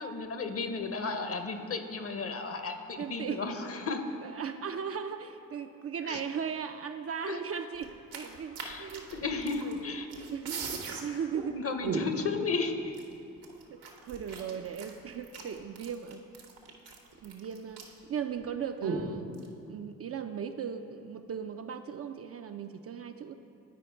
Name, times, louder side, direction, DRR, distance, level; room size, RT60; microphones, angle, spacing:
voice 1, 0.0-4.0 6.0-6.2 7.3-7.4 8.6-10.1 11.4-12.9, left 4 dB, 35° left, 7 dB, 0.8 m, -34 dB
voice 2, 3.0-3.4 4.2-9.1 9.6-9.8 10.3-11.6 13.7-16.2 17.2-17.8 18.1-19.3 19.7-23.3, right 7 dB, 40° right, 7 dB, 0.4 m, -37 dB
sound 1, 7.8-9.8 10.1-11.0 11.3-11.4 11.8-12.3 12.9-13.0 13.4-18.0 18.3-18.4 18.8-19.5, right 4 dB, 75° right, 1.1 m, -37 dB
9.3 x 4.9 x 4.4 m, 2.7 s
hypercardioid pair, 50°, 38 cm